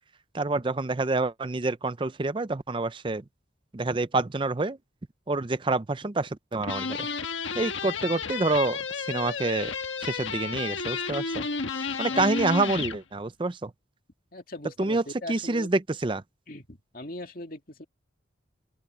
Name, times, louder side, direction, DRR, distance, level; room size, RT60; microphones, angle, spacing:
voice 1, 0.3-3.2 3.7-4.8 5.3-7.1 7.5-9.7 10.0-11.5 12.0-13.7 14.8-15.0 15.3-16.2, right 3 dB, 25° right, 0.5 m, -27 dB
sound 1, 6.6-13.0, left 5 dB, 75° left, 1.4 m, -32 dB
voice 2, 8.0-8.4 12.1-12.3 14.3-15.7 16.5-17.8, left 1 dB, 45° left, 2.5 m, -41 dB
open air
head